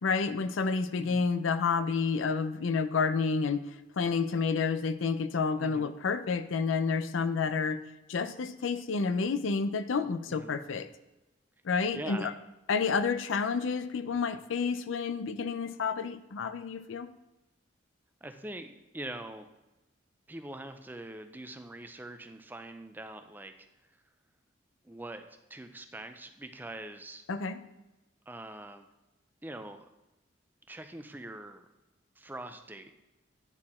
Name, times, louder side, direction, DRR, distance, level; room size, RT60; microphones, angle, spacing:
voice 1, 0.0-3.6 4.0-7.8 8.1-10.9 11.6-12.3 12.7-17.1 27.3-27.6, left 5 dB, 90° left, 12 dB, 0.5 m, -29 dB
voice 2, 5.6-5.9 10.3-10.6 11.9-12.4 18.2-19.5 20.3-23.5 23.9-24.0 24.8-27.2 28.3-28.9 29.4-29.9 30.7-31.7 32.2-32.9, right 1 dB, 10° right, 7 dB, 0.4 m, -43 dB
9.7 x 4.3 x 4.2 m, 0.99 s
head